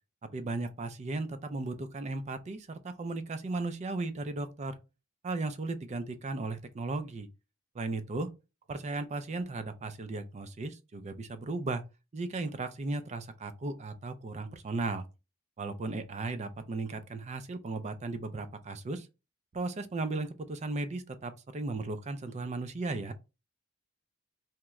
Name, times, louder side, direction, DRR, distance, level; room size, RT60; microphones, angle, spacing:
voice 1, 0.3-4.8 5.2-7.3 7.7-8.3 8.7-11.8 12.1-15.0 15.6-19.1 19.5-23.1, right 3 dB, 35° right, 0.4 m, -36 dB
2.9 x 2.2 x 3.5 m
head